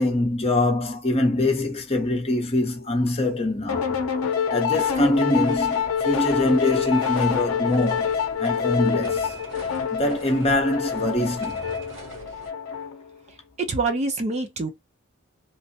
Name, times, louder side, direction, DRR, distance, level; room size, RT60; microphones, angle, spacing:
voice 1, 0.0-4.0 4.5-8.1 8.4-9.3 9.9-11.6, left 1 dB, 30° left, 0.8 m, -23 dB
sound 1, 3.7-13.1, left 7 dB, 90° left, 0.6 m, -26 dB
sound 2, 4.7-12.5, right 2 dB, 60° right, 1.0 m, -43 dB
voice 2, 13.6-14.7, right 3 dB, 30° right, 0.5 m, -25 dB
3.2 x 2.1 x 2.7 m
head